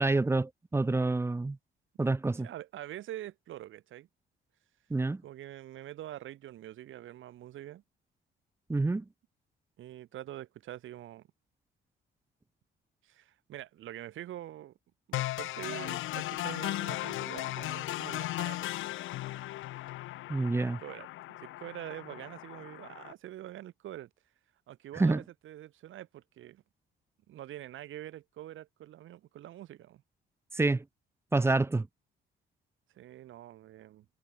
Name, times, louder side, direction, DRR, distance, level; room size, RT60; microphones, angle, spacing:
voice 1, 0.0-1.6 2.0-2.5 4.9-5.2 8.7-9.0 20.3-20.8 25.0-25.2 30.6-30.8 31.3-31.9, right 2 dB, 15° right, 0.5 m, -27 dB
voice 2, 2.4-4.1 5.2-7.8 9.8-11.3 13.0-14.8 15.1-18.8 20.4-21.1 21.4-24.1 24.7-26.6 27.3-30.0 32.9-34.1, right 13 dB, 80° right, 5.4 m, -45 dB
sound 1, 15.1-23.1, left 16 dB, 80° left, 0.6 m, -37 dB
cardioid pair, 90°, 20 cm